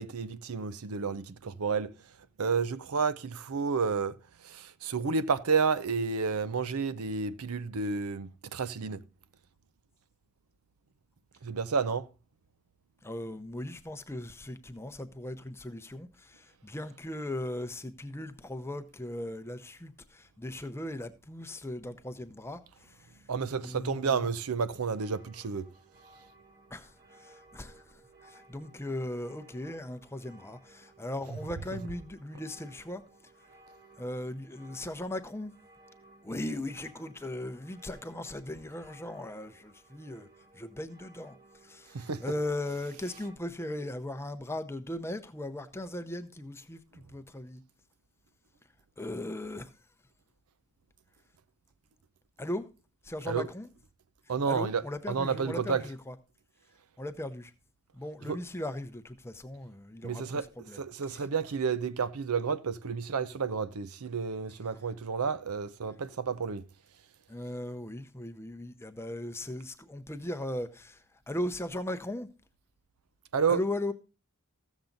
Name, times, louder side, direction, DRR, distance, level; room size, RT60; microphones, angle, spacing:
voice 1, 0.0-1.9 2.4-4.2 4.4-9.0 11.4-12.1 23.3-25.7 41.9-42.2 53.3-53.5 54.3-54.8 55.1-55.8 58.3-58.4 60.0-60.5 60.7-66.6 73.3-73.6, right 5 dB, 85° right, 0.6 m, -30 dB
voice 2, 13.0-23.1 23.6-24.3 26.7-33.0 34.0-35.5 36.2-40.3 40.5-41.4 41.6-47.6 49.0-49.7 52.4-52.7 53.0-53.7 54.5-56.1 57.0-57.5 57.9-60.2 60.6-60.8 61.1-61.2 67.3-72.3 73.5-73.9, left 1 dB, 10° left, 0.7 m, -38 dB
sound 1, 24.6-43.4, right 2 dB, 40° right, 1.4 m, -59 dB
14.5 x 7.2 x 3.9 m
head